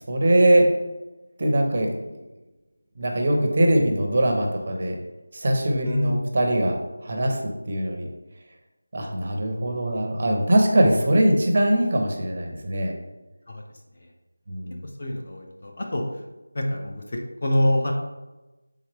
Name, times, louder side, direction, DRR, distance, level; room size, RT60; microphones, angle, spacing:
voice 1, 0.1-0.7 1.4-1.9 3.0-5.0 5.3-6.8 7.0-8.1 8.9-12.9 14.5-14.8, right 1 dB, 25° right, 2 dB, 0.5 m, -21 dB
voice 2, 5.8-6.3 13.5-13.6 13.9-14.1 14.8-16.2 16.5-17.9, left 1 dB, 25° left, 0 dB, 0.4 m, -26 dB
4.5 x 3.5 x 3.2 m, 1.1 s
figure-of-eight pair, 180°, 0 cm